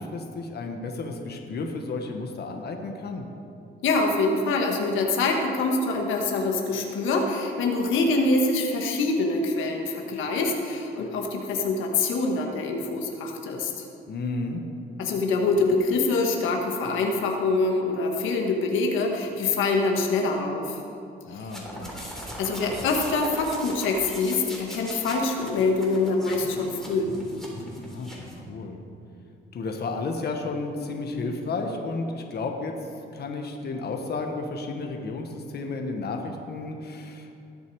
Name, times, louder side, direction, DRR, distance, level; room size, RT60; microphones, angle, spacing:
voice 1, 0.0-3.2 14.1-14.6 21.2-22.0 27.9-28.2 28.5-28.8 29.5-32.7 33.1-37.4, left 3 dB, 55° left, 3 dB, 1.4 m, -32 dB
voice 2, 3.8-13.8 15.0-20.8 21.3-21.5 22.4-27.1, left 3 dB, 85° left, 1 dB, 1.5 m, -25 dB
sound 1, 21.4-28.4, equal, ahead, 3.5 m, -39 dB
19.5 x 6.9 x 4.7 m, 2.5 s
cardioid pair, 90°, 20 cm